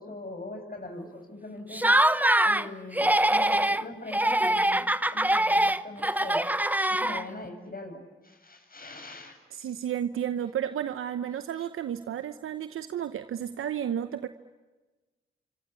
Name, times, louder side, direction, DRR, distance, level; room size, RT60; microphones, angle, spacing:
voice 1, 0.0-1.9 2.4-6.4 6.9-9.4, left 2 dB, 45° left, 6 dB, 8.0 m, -42 dB
Laughter, 1.7-2.7 2.9-3.8 4.1-7.5, right 1 dB, 10° right, 1.1 m, -23 dB
voice 2, 9.5-14.3, right 9 dB, 85° right, 11 dB, 0.9 m, -32 dB
27.5 x 25.5 x 8.5 m, 1.2 s
supercardioid pair, 45°, 21 cm